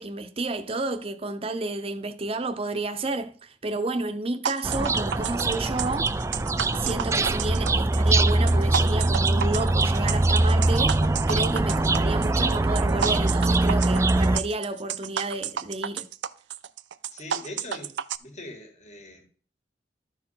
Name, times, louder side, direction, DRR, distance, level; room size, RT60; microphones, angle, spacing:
voice 1, 0.0-6.2 6.7-16.1, right 2 dB, 35° right, 0.8 m, -31 dB
sound 1, 4.4-18.2, right 8 dB, 85° right, 0.5 m, -31 dB
sound 2, 4.6-14.4, right 2 dB, 15° right, 0.4 m, -23 dB
voice 2, 17.1-19.2, left 2 dB, 40° left, 2.0 m, -41 dB
12.5 x 4.5 x 5.6 m
head